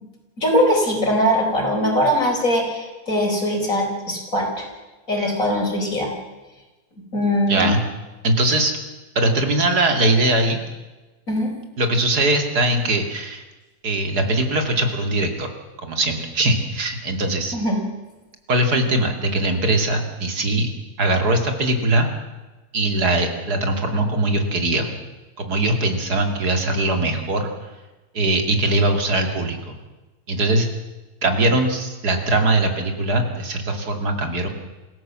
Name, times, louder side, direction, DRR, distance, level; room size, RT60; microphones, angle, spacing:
voice 1, 0.4-4.7 5.1-6.1 7.1-7.7 11.3-11.5 17.5-17.8, equal, 60° left, 1 dB, 5.2 m, -21 dB
voice 2, 7.5-7.8 8.2-8.8 9.1-10.6 11.8-13.4 13.8-15.5 15.8-17.6 18.5-20.7 21.0-22.1 22.7-25.0 25.4-27.5 28.1-29.8 30.3-30.7 31.2-34.5, right 2 dB, 85° right, 5 dB, 3.0 m, -21 dB
26.5 x 16.0 x 7.5 m, 1.1 s
omnidirectional pair, 1.6 m